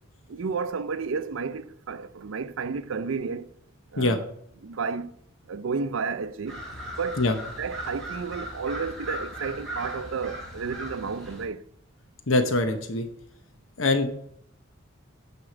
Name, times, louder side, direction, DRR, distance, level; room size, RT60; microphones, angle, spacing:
voice 1, 0.3-3.5 3.9-4.3 4.6-5.1 5.5-6.6 7.0-7.3 7.6-11.6, right 5 dB, 85° right, 0.5 m, -31 dB
sound 1, 6.5-11.5, equal, ahead, 3.7 m, -38 dB
voice 2, 12.3-13.0 13.8-14.1, left 2 dB, 80° left, 0.9 m, -23 dB
9.5 x 4.9 x 4.9 m
head